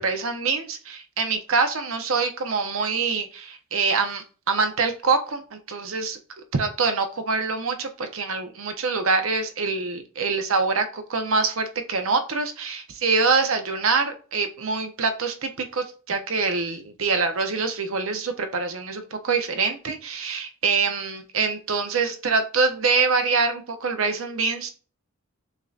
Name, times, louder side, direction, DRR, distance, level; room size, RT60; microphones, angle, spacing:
voice 1, 0.0-6.2 6.5-24.7, right 4 dB, 70° right, 7 dB, 0.7 m, -25 dB
6.5 x 2.7 x 2.4 m, 0.37 s
head